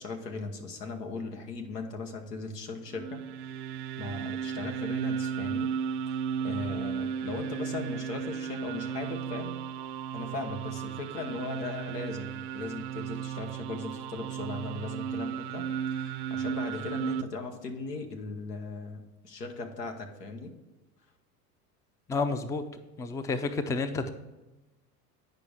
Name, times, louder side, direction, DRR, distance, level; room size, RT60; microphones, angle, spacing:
voice 1, 0.0-3.2 4.0-5.7 6.1-9.6 10.1-15.7 15.9-20.5, left 3 dB, 85° left, 5 dB, 1.3 m, -38 dB
sound 1, 2.9-17.2, right 8 dB, 45° right, 0.6 m, -34 dB
voice 2, 22.1-22.6 23.0-24.1, left 3 dB, 5° left, 10 dB, 0.4 m, -30 dB
9.6 x 5.3 x 4.7 m, 1.1 s
hypercardioid pair, 80°, 47 cm